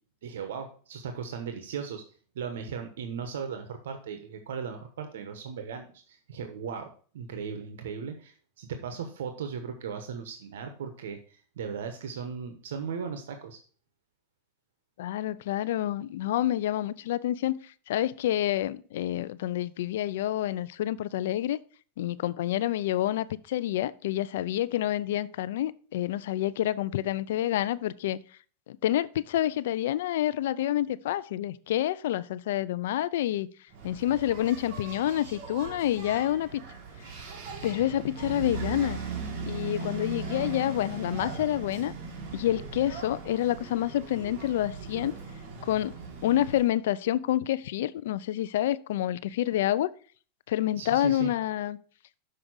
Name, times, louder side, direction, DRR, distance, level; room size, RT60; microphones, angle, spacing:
voice 1, 0.2-2.0 2.3-13.6 50.8-51.3, right 6 dB, 90° right, 1.0 m, -37 dB
voice 2, 15.0-17.6 17.9-21.6 22.0-28.2 28.7-33.5 33.8-36.6 37.6-39.0 39.5-41.9 42.3-45.2 45.6-45.9 46.2-49.9 50.5-51.8, left 13 dB, 80° left, 0.4 m, -28 dB
Engine, 33.7-46.7, right 4 dB, 50° right, 2.5 m, -39 dB
6.7 x 4.9 x 6.1 m
supercardioid pair, 135°, 0 cm